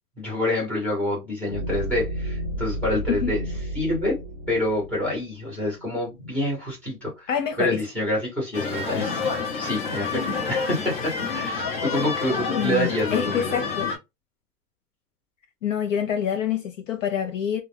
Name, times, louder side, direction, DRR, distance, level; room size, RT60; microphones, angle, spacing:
voice 1, 0.2-3.4 3.7-4.2 4.5-7.3 7.6-9.3 9.6-13.6, left 1 dB, 5° left, 0.9 m, -27 dB
sound 1, 1.5-6.1, right 1 dB, 40° right, 0.6 m, -32 dB
voice 2, 7.3-7.8 12.6-13.9 15.6-17.6, left 8 dB, 55° left, 0.5 m, -26 dB
sound 2, 8.5-14.0, left 4 dB, 35° left, 0.9 m, -28 dB
2.3 x 2.2 x 3.1 m
hypercardioid pair, 160°, 48 cm